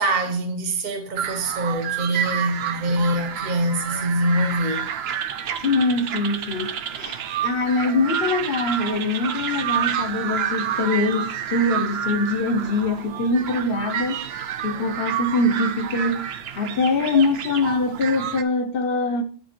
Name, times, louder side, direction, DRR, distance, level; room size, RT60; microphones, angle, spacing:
voice 1, 0.0-4.9, right 1 dB, 35° right, 1.1 m, -24 dB
sound 1, 1.2-18.4, right 9 dB, 60° right, 0.8 m, -29 dB
voice 2, 5.6-14.2 14.6-19.2, left 2 dB, 50° left, 0.9 m, -23 dB
8.1 x 5.1 x 4.4 m
omnidirectional pair, 1.3 m